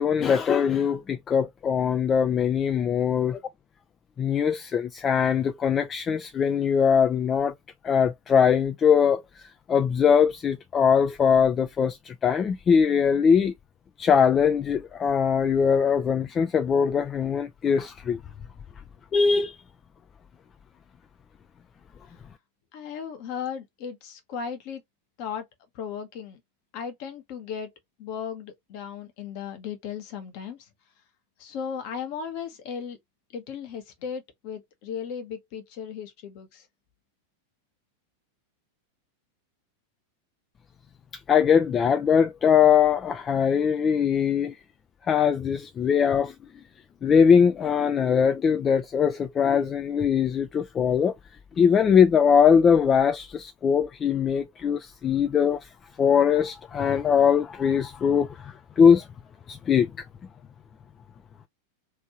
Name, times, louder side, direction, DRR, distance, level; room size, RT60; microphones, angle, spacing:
voice 1, 0.0-3.4 4.2-7.5 7.8-13.5 14.0-18.2 19.1-19.6 41.3-44.6 45.1-46.3 47.0-51.1 51.6-55.7 56.0-59.1 59.5-59.9, left 7 dB, 25° left, 0.4 m, -21 dB
voice 2, 22.7-24.8 25.2-25.4 25.7-26.4 26.7-27.7 28.0-30.7 31.4-33.0 33.3-36.7, left 7 dB, 45° left, 1.0 m, -36 dB
3.0 x 2.6 x 2.9 m
figure-of-eight pair, 90°, 0 cm